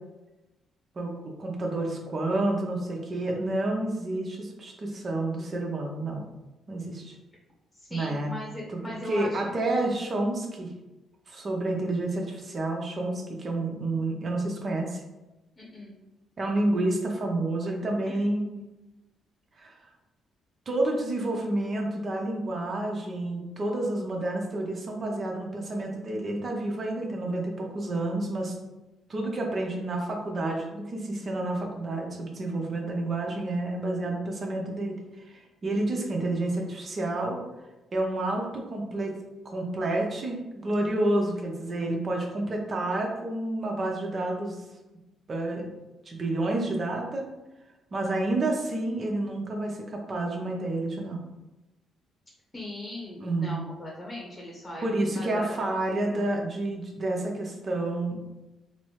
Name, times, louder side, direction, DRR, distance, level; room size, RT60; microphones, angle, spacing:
voice 1, 1.0-6.2 6.7-7.2 7.9-8.3 8.7-8.8 9.1-10.7 11.3-15.0 16.4-18.5 19.6-19.7 20.7-28.5 29.1-37.4 37.9-39.2 39.4-40.3 40.6-44.6 45.3-45.7 46.1-47.2 47.9-51.2 53.2-53.6 54.8-58.2, right 2 dB, 40° right, 1 dB, 0.7 m, -29 dB
voice 2, 7.7-9.8 15.6-15.9 16.7-16.8 18.1-18.2 35.7-36.1 52.5-54.9 55.1-56.2, left 1 dB, 20° left, -3 dB, 0.9 m, -40 dB
4.1 x 2.0 x 3.1 m, 1.0 s
cardioid pair, 90°, 0 cm